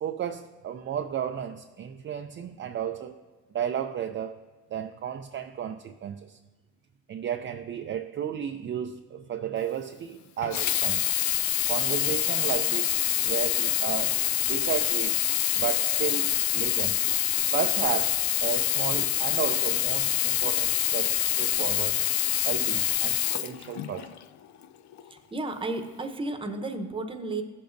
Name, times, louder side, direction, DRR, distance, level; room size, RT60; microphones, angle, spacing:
voice 1, 0.0-3.2 3.5-4.4 4.7-6.4 7.1-11.0 11.7-14.2 14.4-15.2 15.5-17.0 17.5-22.0 22.5-24.1, right 9 dB, 40° right, 6 dB, 0.4 m, -33 dB
Sink (filling or washing), 10.4-24.2 24.9-25.0, left 13 dB, 70° left, 0.4 m, -26 dB
voice 2, 25.3-27.4, right 2 dB, 15° right, 5 dB, 0.9 m, -32 dB
15.0 x 6.9 x 2.6 m, 1.3 s
cardioid pair, 90°, 30 cm